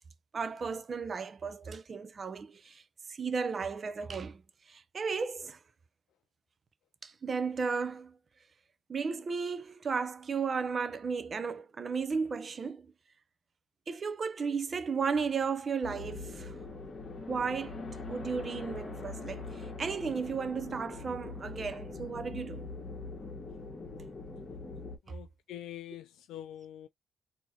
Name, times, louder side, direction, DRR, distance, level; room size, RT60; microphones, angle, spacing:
voice 1, 0.3-2.8 3.1-4.4 4.7-5.6 7.0-8.1 8.9-12.9 13.9-16.5 17.3-17.8 18.1-19.5 19.8-22.7, right 5 dB, 40° right, 0.6 m, -34 dB
sound 1, 15.8-25.0, left 3 dB, 35° left, 1.6 m, -42 dB
voice 2, 25.1-26.9, left 12 dB, 85° left, 0.3 m, -45 dB
3.9 x 2.8 x 2.8 m
cardioid pair, 90°, 0 cm